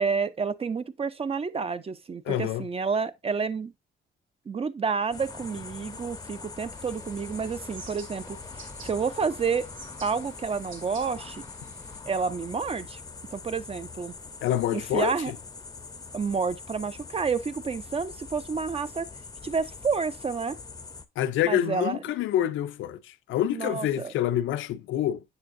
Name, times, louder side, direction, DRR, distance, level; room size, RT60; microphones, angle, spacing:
voice 1, 0.0-3.7 4.5-9.7 10.0-11.4 12.1-13.0 13.3-14.1 14.7-15.3 16.1-19.1 19.4-20.6 21.4-22.0 23.5-24.1, right 5 dB, 30° right, 0.5 m, -29 dB
voice 2, 2.3-2.7 14.4-15.1 21.2-25.2, left 11 dB, 80° left, 0.5 m, -27 dB
sound 1, 5.1-21.0, left 4 dB, 20° left, 0.6 m, -43 dB
sound 2, 6.7-12.0, right 3 dB, 90° right, 1.9 m, -50 dB
6.9 x 6.8 x 2.5 m
cardioid pair, 90°, 20 cm